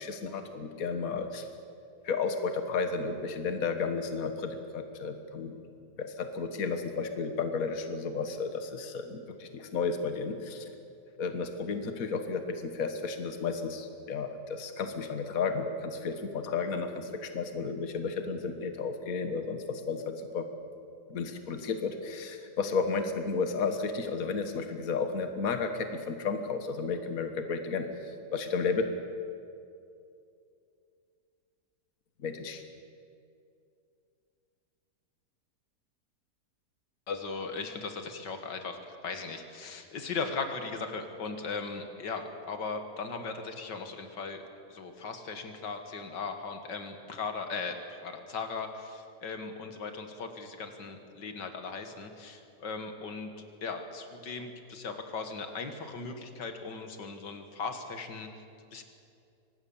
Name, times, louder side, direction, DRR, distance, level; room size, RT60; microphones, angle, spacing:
voice 1, 0.0-1.5 2.0-5.6 6.0-10.6 11.2-20.4 21.1-28.9 32.2-32.6, left 4 dB, 55° left, 7 dB, 1.8 m, -33 dB
voice 2, 37.1-38.8 39.0-44.4 44.7-47.7 48.0-53.3 53.6-58.3 58.7-58.8, left 4 dB, 90° left, 6 dB, 2.3 m, -38 dB
24.5 x 19.0 x 7.2 m, 2.5 s
omnidirectional pair, 1.8 m